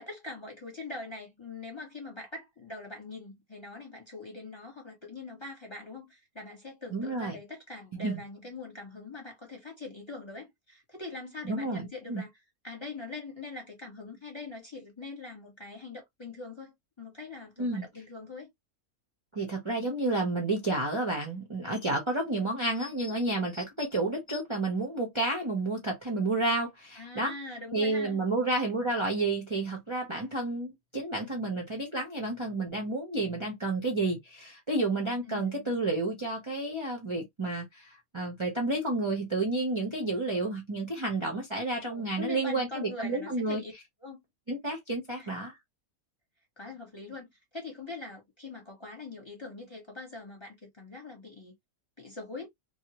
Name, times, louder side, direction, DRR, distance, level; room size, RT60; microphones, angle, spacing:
voice 1, 0.0-12.3 12.6-18.5 27.0-28.2 35.3-35.7 41.9-43.7 44.0-44.2 45.2-45.3 46.6-51.5 52.0-52.5, left 3 dB, 20° left, 1.1 m, -43 dB
voice 2, 6.9-7.4 7.9-8.2 11.4-12.2 17.6-17.8 19.3-27.3 27.7-43.6 44.5-45.5, right 2 dB, 25° right, 0.7 m, -30 dB
2.7 x 2.3 x 2.9 m
omnidirectional pair, 1.5 m